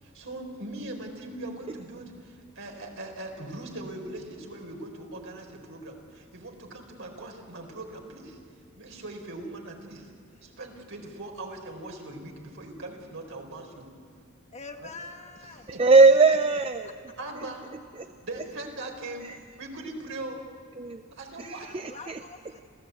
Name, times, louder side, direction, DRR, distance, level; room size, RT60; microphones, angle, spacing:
voice 1, 0.0-8.4 8.8-10.1 10.4-13.9 14.8-14.9 15.4-15.8 17.2-17.6 18.2-19.3 19.6-20.5 21.1-21.9, right 2 dB, 65° right, 2 dB, 4.2 m, -40 dB
voice 2, 14.5-15.7 21.6-22.6, left 3 dB, 35° left, 5 dB, 1.4 m, -44 dB
voice 3, 15.8-16.9 18.0-18.1 19.3-19.4 20.8-21.0 21.4-22.2, right 3 dB, 25° right, 9 dB, 0.5 m, -20 dB
27.5 x 16.0 x 8.3 m, 2.4 s
head